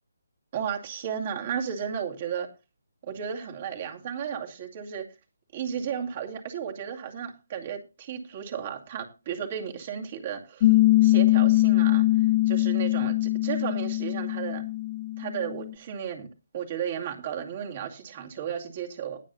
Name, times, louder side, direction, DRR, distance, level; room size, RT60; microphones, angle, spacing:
voice 1, 0.5-2.5 3.0-5.0 5.5-10.7 11.0-12.1 12.5-14.6 15.2-16.3 16.5-19.2, right 8 dB, 40° right, 2 dB, 2.4 m, -34 dB
Piano, 10.6-15.7, left 17 dB, 35° left, 1.0 m, -22 dB
20.0 x 7.5 x 2.7 m, 0.28 s
figure-of-eight pair, 150°, 0 cm